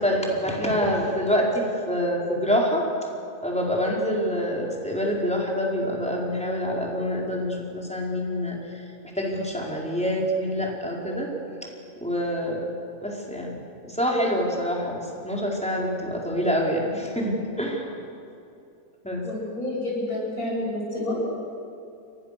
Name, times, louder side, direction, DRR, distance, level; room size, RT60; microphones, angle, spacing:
voice 1, 0.0-2.8 3.4-8.6 9.1-11.3 12.0-12.7 13.0-13.6 13.9-17.9 19.0-19.2, equal, 5° left, -3 dB, 4.8 m, -26 dB
voice 2, 19.2-21.3, left 1 dB, 85° left, -3 dB, 8.4 m, -29 dB
30.0 x 23.0 x 6.9 m, 2.7 s
omnidirectional pair, 1.5 m